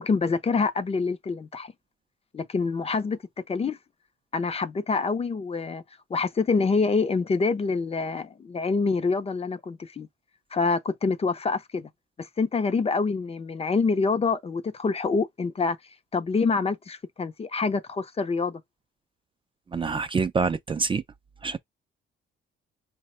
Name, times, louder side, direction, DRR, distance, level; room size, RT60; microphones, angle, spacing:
voice 1, 0.0-1.7 2.3-3.2 3.5-3.8 4.3-5.8 6.1-10.1 10.5-11.9 12.2-15.8 16.1-18.6, left 4 dB, 30° left, 0.5 m, -26 dB
voice 2, 19.7-21.0 21.4-21.6, right 4 dB, 25° right, 0.4 m, -26 dB
4.6 x 2.2 x 4.2 m
cardioid pair, 90°, 20 cm